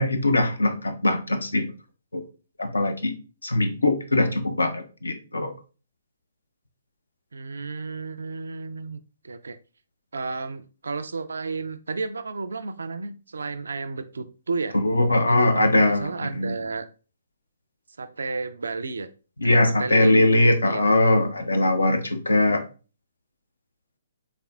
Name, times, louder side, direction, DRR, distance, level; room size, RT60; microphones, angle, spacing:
voice 1, 0.0-1.7 2.1-2.2 2.6-3.1 3.4-5.5 14.7-16.6 19.4-22.6, left 2 dB, 75° left, 7 dB, 0.6 m, -21 dB
voice 2, 7.3-9.0 9.2-9.6 10.1-14.8 15.3-16.8 18.0-19.1 19.4-20.1 20.4-20.8, right 4 dB, 70° right, 11 dB, 0.4 m, -32 dB
4.2 x 3.5 x 2.3 m, 0.35 s
figure-of-eight pair, 125°, 0 cm